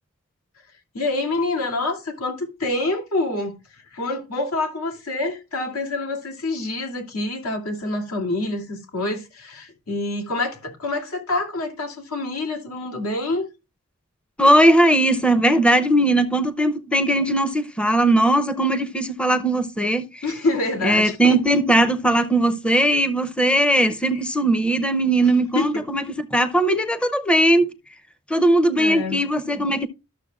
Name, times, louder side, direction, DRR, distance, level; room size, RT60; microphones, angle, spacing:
voice 1, 0.9-13.5 20.2-21.4 24.1-24.2 25.5-25.9 28.8-29.2, left 2 dB, 90° left, 2.4 m, -27 dB
voice 2, 14.4-20.2 20.8-27.7 28.3-29.9, right 1 dB, 5° left, 0.5 m, -19 dB
13.0 x 6.8 x 2.3 m
head